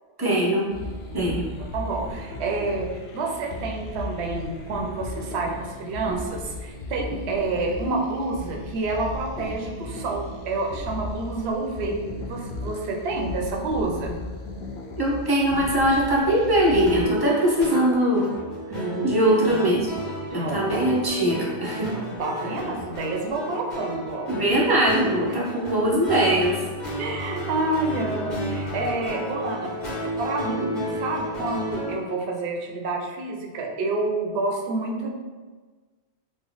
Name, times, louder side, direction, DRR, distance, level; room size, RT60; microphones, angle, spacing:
voice 1, 0.2-0.7 1.1-1.4 15.0-18.3 19.0-19.9 20.3-21.9 24.3-26.6, right 1 dB, 25° right, -4 dB, 0.6 m, -21 dB
sound 1, 0.7-17.1, left 2 dB, 70° left, 0.8 m, -36 dB
voice 2, 1.1-14.2 18.7-19.7 20.4-20.8 22.2-24.3 27.0-29.7 30.2-35.1, right 3 dB, 80° right, 1 dB, 0.8 m, -29 dB
sound 2, 16.9-32.1, equal, 45° left, 1.2 m, -32 dB
3.1 x 2.1 x 3.9 m, 1.4 s
omnidirectional pair, 1.1 m